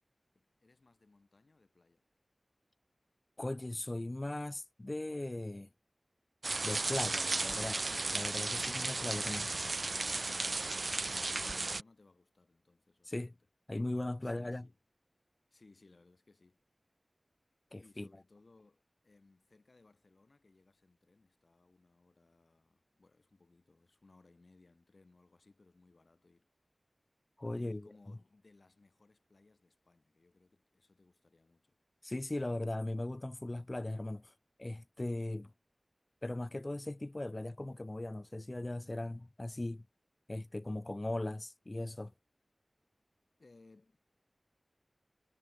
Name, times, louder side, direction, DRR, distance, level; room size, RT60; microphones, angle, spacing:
voice 1, 0.3-2.1 10.9-13.4 14.2-14.8 15.5-16.6 17.8-26.5 27.5-31.8 43.4-44.0, left 3 dB, 65° left, 5.8 m, -65 dB
voice 2, 3.4-5.7 6.6-7.8 8.1-9.5 13.1-13.3 13.7-14.7 17.7-18.1 27.4-27.9 32.0-34.3 34.6-35.5 36.2-39.8 40.3-42.1, left 1 dB, 35° left, 2.1 m, -38 dB
sound 1, 6.4-11.8, right 3 dB, 60° right, 0.5 m, -35 dB
wide cardioid pair, 65°, 0 cm